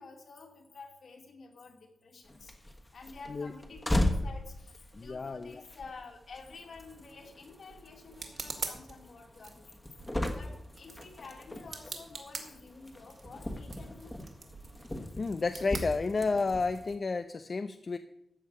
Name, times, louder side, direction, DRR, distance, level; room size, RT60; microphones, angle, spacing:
voice 1, 0.0-2.5 2.9-9.8 10.3-14.2, left 4 dB, 65° left, 2 dB, 2.6 m, -50 dB
sound 1, 2.2-16.9, left 1 dB, 15° left, 1.4 m, -38 dB
voice 2, 4.9-5.6 15.2-18.0, left 4 dB, 40° left, 9 dB, 0.5 m, -31 dB
sound 2, 6.8-16.7, right 4 dB, 55° right, 2.1 m, -46 dB
14.0 x 5.6 x 8.8 m, 0.79 s
wide cardioid pair, 160°, 0 cm